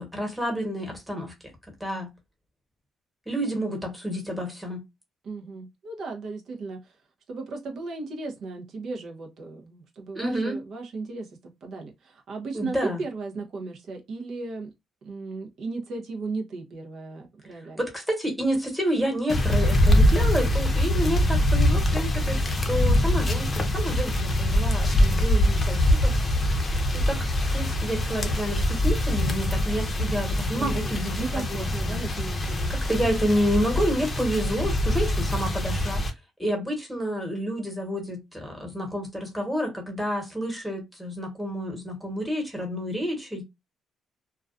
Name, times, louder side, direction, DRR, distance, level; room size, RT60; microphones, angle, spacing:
voice 1, 0.0-1.3 1.8-2.1 3.3-4.8 10.1-10.6 12.5-13.0 17.8-26.1 26.9-32.0 32.9-36.0 36.4-43.4, equal, 5° right, 1.1 m, -29 dB
voice 2, 5.2-7.0 7.3-11.3 11.6-14.7 15.0-17.8 30.6-32.7, right 3 dB, 65° right, 0.6 m, -36 dB
sound 1, 19.3-36.1, left 1 dB, 30° left, 0.6 m, -23 dB
2.3 x 2.2 x 2.4 m
cardioid pair, 90°, 0 cm